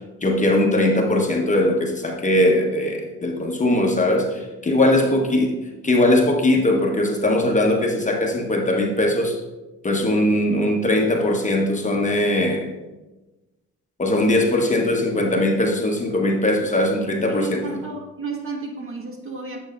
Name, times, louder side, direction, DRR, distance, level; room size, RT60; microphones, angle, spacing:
voice 1, 0.2-5.5 5.8-9.4 9.8-12.7 14.0-17.8, left 1 dB, 25° left, 1 dB, 1.1 m, -20 dB
voice 2, 17.3-19.6, right 4 dB, 45° right, 0 dB, 1.5 m, -32 dB
8.9 x 6.5 x 2.5 m, 1.1 s
cardioid pair, 90°, 30 cm